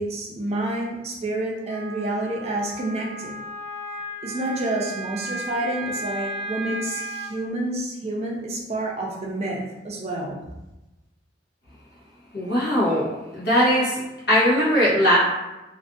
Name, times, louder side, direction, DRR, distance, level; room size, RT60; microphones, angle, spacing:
voice 1, 0.0-3.3 4.2-10.4, right 1 dB, 35° right, -1 dB, 0.4 m, -29 dB
Wind instrument woodwind instrument, 1.7-7.4, right 2 dB, 5° right, 0.9 m, -34 dB
voice 2, 12.3-14.0 14.3-15.2, equal, 60° left, -7 dB, 0.9 m, -20 dB
2.5 x 2.4 x 2.5 m, 1.0 s
head